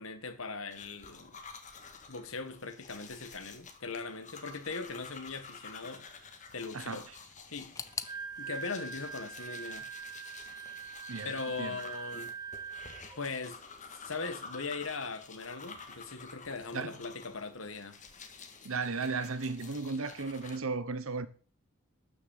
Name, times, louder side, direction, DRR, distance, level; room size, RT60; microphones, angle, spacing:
voice 1, 0.0-1.4 2.1-6.1 6.5-7.1 7.5-7.7 8.4-9.9 11.2-12.4 13.2-13.6 13.9-18.0, left 4 dB, 70° left, 1.7 m, -40 dB
sound 1, 0.7-20.6, left 5 dB, 35° left, 1.8 m, -50 dB
voice 2, 6.7-7.2 11.1-11.3 11.6-11.8 16.7-17.0 18.6-21.3, right 4 dB, 75° right, 1.0 m, -35 dB
sound 2, 7.7-10.6 10.9-11.7 12.0-12.1 12.9-13.0, left 5 dB, 15° left, 0.6 m, -46 dB
Wind instrument woodwind instrument, 7.9-13.2, right 6 dB, 20° right, 0.9 m, -43 dB
12.5 x 6.5 x 7.3 m
head